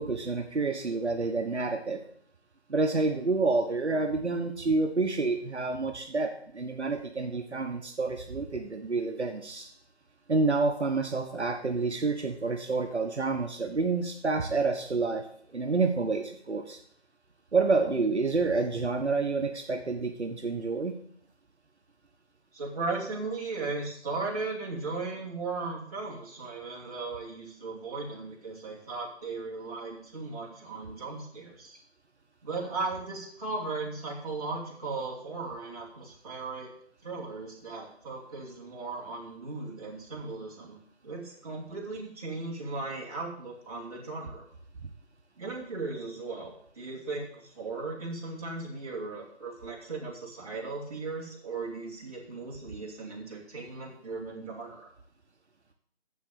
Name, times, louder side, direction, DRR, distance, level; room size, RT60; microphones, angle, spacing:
voice 1, 0.0-2.0 2.7-9.7 10.3-16.8 17.5-20.9, right 3 dB, 85° right, 4 dB, 1.3 m, -28 dB
voice 2, 22.5-31.8 32.4-36.7 37.0-40.8 41.0-44.4 45.4-54.9, right 3 dB, 35° right, -4 dB, 2.8 m, -37 dB
7.6 x 7.1 x 6.9 m, 0.64 s
figure-of-eight pair, 165°, 33 cm